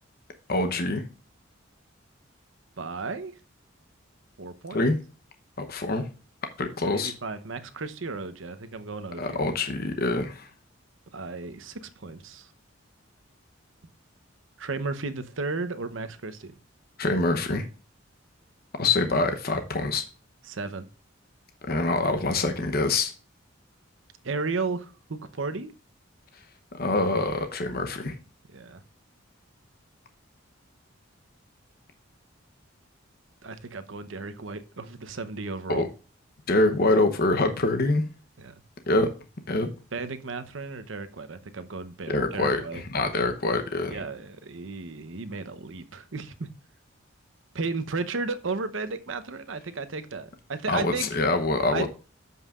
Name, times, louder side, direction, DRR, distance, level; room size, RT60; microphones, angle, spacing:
voice 1, 0.5-1.0 4.7-5.0 5.6-6.1 6.6-7.1 9.2-10.5 17.0-17.7 18.8-20.0 21.7-23.1 26.7-28.2 35.7-35.9 36.5-38.0 38.9-39.1 39.5-39.7 42.1-44.0 50.7-51.9, left 2 dB, 50° left, 0.9 m, -25 dB
voice 2, 2.8-3.3 4.4-4.9 6.8-9.4 11.1-12.5 14.6-16.5 20.5-20.9 24.2-25.7 28.5-28.8 33.4-35.9 38.4-38.5 39.9-42.8 43.9-46.5 47.5-51.1 51.7-51.9, right 3 dB, 70° right, 0.8 m, -34 dB
13.5 x 5.5 x 2.4 m
head